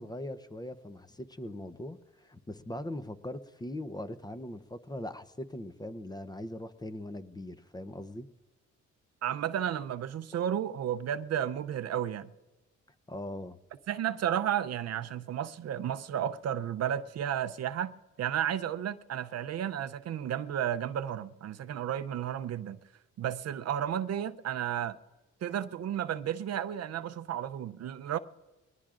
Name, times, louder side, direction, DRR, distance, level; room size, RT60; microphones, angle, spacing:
voice 1, 0.0-8.3 13.1-13.6, left 1 dB, 15° left, 0.7 m, -40 dB
voice 2, 9.2-12.3 13.9-17.9 18.2-22.8 23.2-25.0 25.4-28.2, right 10 dB, 55° right, 0.6 m, -32 dB
22.5 x 19.0 x 2.5 m
cardioid pair, 90°, 30 cm